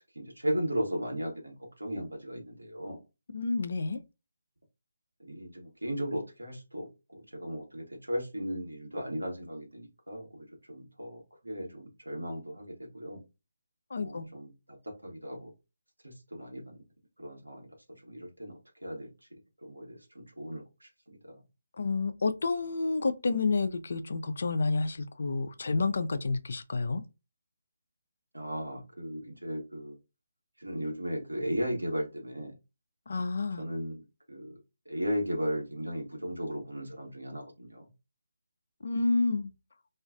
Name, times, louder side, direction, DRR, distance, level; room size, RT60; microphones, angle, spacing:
voice 1, 0.1-3.0 5.3-6.9 7.3-13.2 14.0-14.5 14.8-15.5 16.0-16.8 17.2-17.7 18.0-19.1 19.6-20.9 21.2-21.4 28.3-30.0 30.6-32.5 33.6-34.5 34.9-37.9, equal, 80° right, 1.0 m, -36 dB
voice 2, 3.3-4.0 13.9-14.3 21.8-27.0 33.1-33.6 38.8-39.5, left 3 dB, 55° left, 0.3 m, -29 dB
2.4 x 2.3 x 2.4 m
figure-of-eight pair, 150°, 0 cm